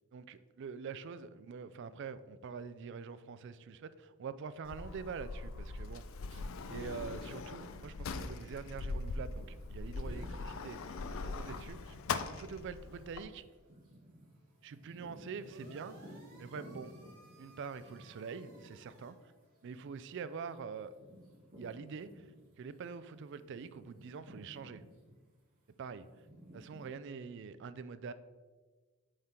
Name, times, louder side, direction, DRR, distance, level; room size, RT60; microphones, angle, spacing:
voice 1, 0.1-6.0 6.3-6.4 6.7-10.8 11.3-12.0 12.3-13.4 14.6-17.0 17.4-19.3 19.6-20.9 21.6-22.3 22.6-24.8 25.8-26.1 26.5-28.1, right 5 dB, 55° right, 14 dB, 0.3 m, -45 dB
Sliding door, 4.6-13.2, left 3 dB, 65° left, 0.4 m, -41 dB
sound 1, 7.6-22.7 23.1-26.9, equal, 40° right, 1.9 m, -57 dB
sound 2, 15.4-19.1, right 2 dB, 75° right, 1.8 m, -61 dB
7.7 x 3.7 x 4.3 m, 1.4 s
head